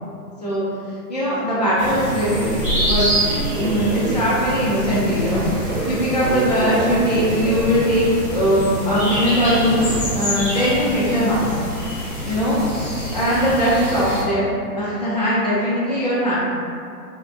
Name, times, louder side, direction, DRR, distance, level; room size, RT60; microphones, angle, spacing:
voice 1, 1.1-3.2 3.6-5.4 5.9-9.8 10.1-11.4 12.3-12.6 13.1-14.5 14.8-16.3, equal, 30° left, -9 dB, 0.4 m, -20 dB
sound 1, 1.8-14.2, equal, 20° right, 0.6 m, -27 dB
Human voice / Subway metro underground, 2.3-10.2, right 2 dB, 65° right, 0.6 m, -28 dB
4.2 x 2.1 x 2.4 m, 2.4 s
hypercardioid pair, 170°, 47 cm